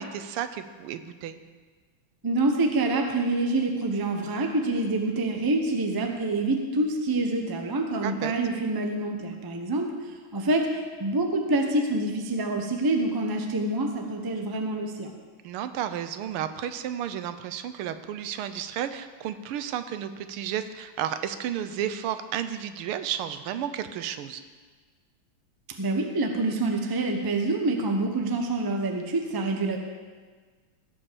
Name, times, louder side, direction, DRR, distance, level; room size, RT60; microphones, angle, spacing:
voice 1, 0.0-1.4 8.0-8.3 15.4-24.4, right 10 dB, 85° right, 11 dB, 1.6 m, -32 dB
voice 2, 2.2-9.9 10.3-15.1 25.8-29.8, right 2 dB, 25° right, 3 dB, 0.4 m, -26 dB
15.5 x 5.6 x 6.9 m, 1.5 s
omnidirectional pair, 2.4 m